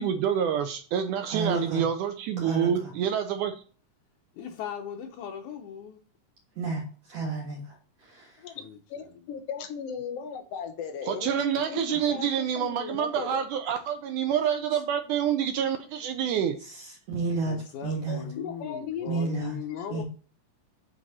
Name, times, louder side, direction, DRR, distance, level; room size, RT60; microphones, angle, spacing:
voice 1, 0.0-3.6 11.1-16.6, right 8 dB, 80° right, 2.0 m, -27 dB
voice 2, 1.3-1.8 2.4-2.9 6.6-7.8 8.0-8.4 16.7-17.5 17.8-18.2 19.1-19.6 19.9-20.0, right 4 dB, 55° right, 2.7 m, -31 dB
voice 3, 4.3-6.0 8.6-9.2 11.6-11.7 12.1-12.2 13.2-13.4 17.5-20.0, left 8 dB, 70° left, 2.2 m, -39 dB
voice 4, 8.9-13.4 18.1-19.2 19.7-19.8, left 7 dB, 90° left, 1.3 m, -37 dB
8.1 x 5.2 x 4.1 m
omnidirectional pair, 4.0 m